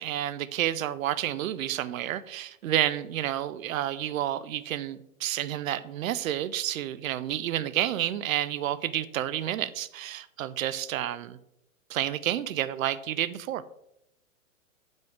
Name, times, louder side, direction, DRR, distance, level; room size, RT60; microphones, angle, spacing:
voice 1, 0.0-11.4 11.9-13.6, right 12 dB, 70° right, 15 dB, 0.6 m, -30 dB
7.6 x 5.2 x 3.6 m, 0.80 s
hypercardioid pair, 140°, 41 cm